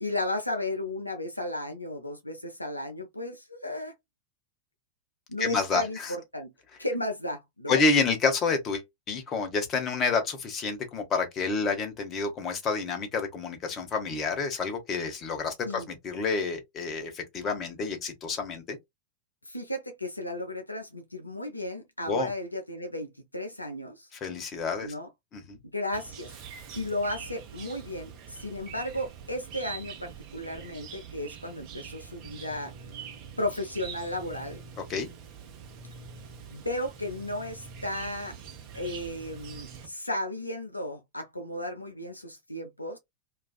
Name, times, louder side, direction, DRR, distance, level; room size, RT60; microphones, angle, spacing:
voice 1, 0.0-3.9 5.3-6.5 6.8-7.8 15.6-15.9 19.5-24.1 24.8-25.1 25.7-26.3 26.8-32.7 33.4-34.6 36.5-38.4 38.7-43.0, left 1 dB, 85° left, 0.5 m, -34 dB
voice 2, 5.4-6.1 7.7-18.8 22.1-22.3 24.1-24.9 25.3-25.6 34.9-35.1, left 4 dB, 30° left, 0.8 m, -29 dB
Chirp tweet, 25.9-39.9, right 6 dB, 40° right, 0.7 m, -44 dB
2.4 x 2.4 x 2.3 m
figure-of-eight pair, 90°, 0 cm